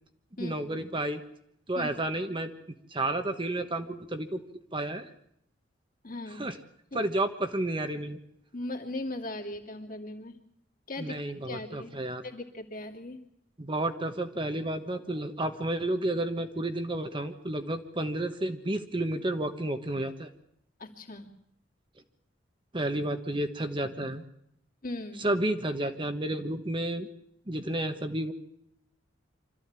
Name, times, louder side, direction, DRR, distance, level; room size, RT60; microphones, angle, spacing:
voice 1, 0.4-1.2 1.7-2.5 2.9-4.4 4.7-5.1 6.4-6.5 6.9-8.2 11.0-12.2 13.6-20.3 22.7-24.2 25.2-27.1 27.5-28.3, right 1 dB, 25° right, 7 dB, 1.2 m, -31 dB
voice 2, 6.0-6.4 6.9-7.0 8.5-10.4 10.9-11.2 11.4-11.9 12.2-13.2 20.8-21.3 24.8-25.3, left 2 dB, 45° left, 1 dB, 2.7 m, -38 dB
25.5 x 14.0 x 8.9 m, 0.74 s
head